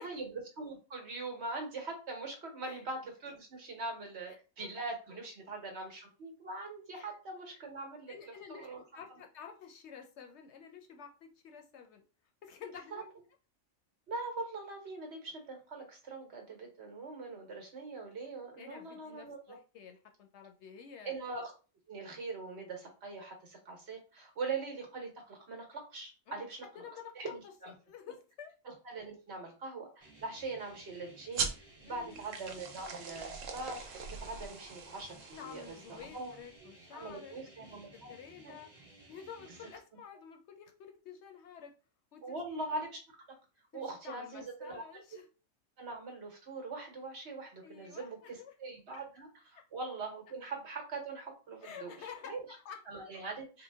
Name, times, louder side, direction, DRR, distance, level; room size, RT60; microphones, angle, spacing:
voice 1, 0.0-8.1 8.5-8.8 12.9-13.0 14.1-19.6 21.0-21.5 21.9-26.6 27.1-27.7 28.6-31.5 31.8-36.3 36.9-38.1 38.4-38.6 42.2-43.4 43.7-45.2 45.8-51.9 52.3-52.4 52.9-53.6, right 3 dB, 60° right, 2 dB, 1.3 m, -42 dB
voice 2, 4.3-4.7 6.9-7.1 8.1-12.0 12.4-13.1 18.6-21.2 26.3-26.4 26.7-27.3 27.9-28.5 31.8-32.3 35.4-38.7 39.1-41.7 42.1-42.4 43.7-45.3 47.6-48.5 48.9-49.1 49.6-49.7 51.6-52.8, left 7 dB, 70° left, 4 dB, 0.8 m, -50 dB
sound 1, 30.0-39.8, right 2 dB, 25° right, 1.3 m, -58 dB
sound 2, 31.3-36.4, right 5 dB, 80° right, 1.1 m, -41 dB
4.0 x 2.1 x 3.3 m, 0.34 s
omnidirectional pair, 1.3 m